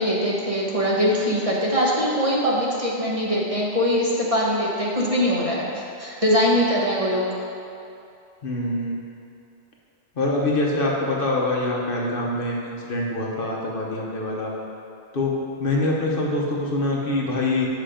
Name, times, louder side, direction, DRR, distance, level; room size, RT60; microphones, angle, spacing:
voice 1, 0.0-7.3, equal, 30° right, -5 dB, 1.2 m, -22 dB
voice 2, 8.4-9.0 10.2-14.5 15.1-15.3 15.6-17.7, left 2 dB, 55° left, -3 dB, 1.1 m, -24 dB
8.1 x 5.6 x 5.0 m, 2.6 s
omnidirectional pair, 1.1 m